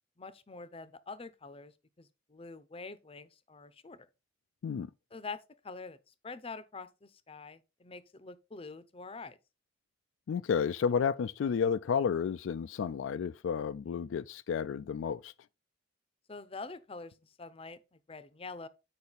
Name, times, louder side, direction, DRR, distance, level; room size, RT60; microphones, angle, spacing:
voice 1, 0.2-4.1 5.1-6.0 6.2-9.4 16.3-18.7, left 3 dB, 30° left, 0.6 m, -46 dB
voice 2, 10.3-15.3, left 6 dB, 70° left, 0.3 m, -31 dB
8.7 x 5.3 x 4.0 m
head